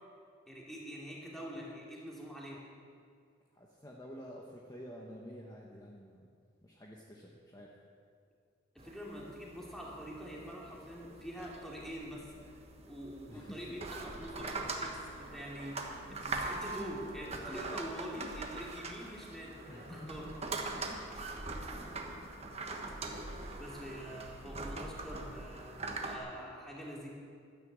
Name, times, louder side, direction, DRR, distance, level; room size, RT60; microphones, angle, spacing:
voice 1, 0.5-2.7 8.7-12.3 12.9-20.3 23.6-27.1, equal, ahead, -4 dB, 2.6 m, -45 dB
voice 2, 3.5-6.2 6.6-7.7 13.3-13.7 16.1-16.3 17.3-17.8 19.7-20.3 20.9-21.1 21.8-22.2, equal, 20° left, -2 dB, 1.1 m, -50 dB
sound 1, 8.8-26.2, right 3 dB, 35° right, 1.3 m, -42 dB
12.5 x 10.0 x 7.5 m, 2.2 s
head